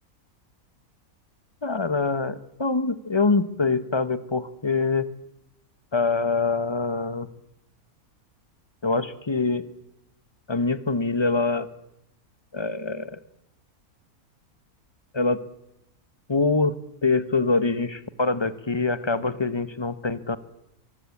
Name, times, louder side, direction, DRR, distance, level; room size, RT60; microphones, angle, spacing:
voice 1, 1.6-5.1 5.9-7.3 8.8-9.6 10.5-11.7 12.5-13.2 15.1-15.4 16.3-16.8 17.0-20.4, left 3 dB, 20° left, 14 dB, 1.1 m, -24 dB
24.0 x 22.5 x 8.5 m, 0.84 s
omnidirectional pair, 1.6 m